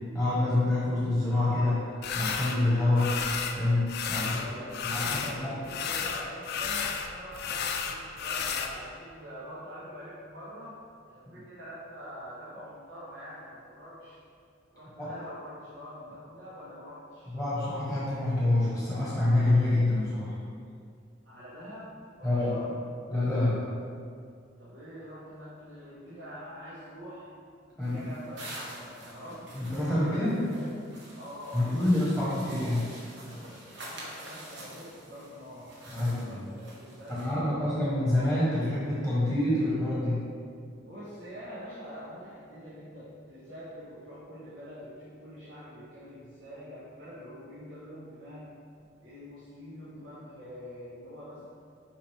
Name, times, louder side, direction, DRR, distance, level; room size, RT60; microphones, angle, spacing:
voice 1, 0.1-1.8 2.1-3.1 3.6-4.3 4.8-5.5 15.0-15.1 17.3-20.3 22.2-22.5 23.1-23.6 27.8-28.0 29.5-30.4 31.5-32.8 35.9-36.4 37.1-40.2, left 1 dB, ahead, -9 dB, 1.3 m, -26 dB
sound 1, 2.0-2.6 3.0-3.6 3.9-5.4 5.6-8.7, left 6 dB, 55° left, 0.4 m, -32 dB
voice 2, 4.1-10.8 11.1-14.2 14.7-17.4 21.2-22.8 24.6-27.3 27.7-29.5 29.9-30.2 30.4-30.8 31.1-32.9 33.8-37.6 40.8-48.5 49.0-51.4, equal, 85° right, -12 dB, 1.5 m, -45 dB
sound 2, 27.8-37.3, right 1 dB, 60° right, 1.2 m, -47 dB
6.1 x 5.1 x 3.5 m, 2.3 s
head